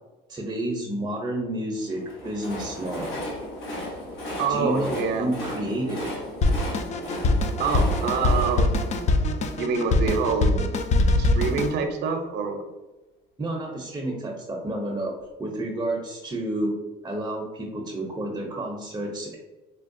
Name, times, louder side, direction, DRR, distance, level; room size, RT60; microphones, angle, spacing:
voice 1, 0.3-3.2 4.5-6.1 13.4-15.1 15.4-16.8 17.0-19.4, right 1 dB, 15° right, 0 dB, 0.6 m, -30 dB
Train, 1.9-10.0, left 1 dB, 80° left, 1.2 m, -35 dB
voice 2, 4.4-5.3 7.6-8.8 9.5-10.6 11.2-12.6, right 5 dB, 55° right, 4 dB, 0.6 m, -26 dB
Drum kit, 6.4-11.7, left 2 dB, 35° left, 0.4 m, -23 dB
4.4 x 2.2 x 2.6 m, 1.1 s
supercardioid pair, 95°, 21 cm